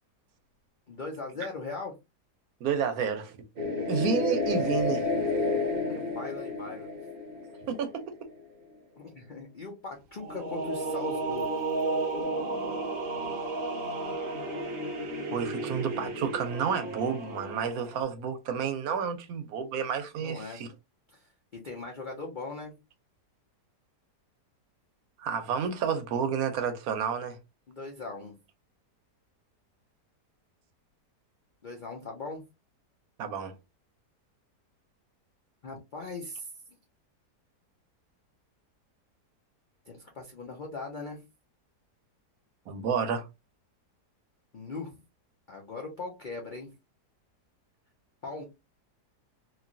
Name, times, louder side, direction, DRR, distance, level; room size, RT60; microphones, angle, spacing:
voice 1, 0.9-1.9 5.9-6.9 9.0-11.5 20.2-20.6 21.1-22.7 27.7-28.3 31.6-32.4 35.6-36.5 39.9-41.2 44.5-45.0 45.5-46.7 48.2-48.4, left 3 dB, 60° left, 0.5 m, -39 dB
voice 2, 2.6-3.4 3.9-5.1 7.7-8.3 15.3-20.7 25.2-27.4 33.2-33.5 42.7-43.3, right 6 dB, 70° right, 1.0 m, -30 dB
sound 1, 3.6-8.1 10.2-18.0, equal, 50° right, 0.7 m, -32 dB
3.0 x 2.5 x 2.5 m
omnidirectional pair, 1.8 m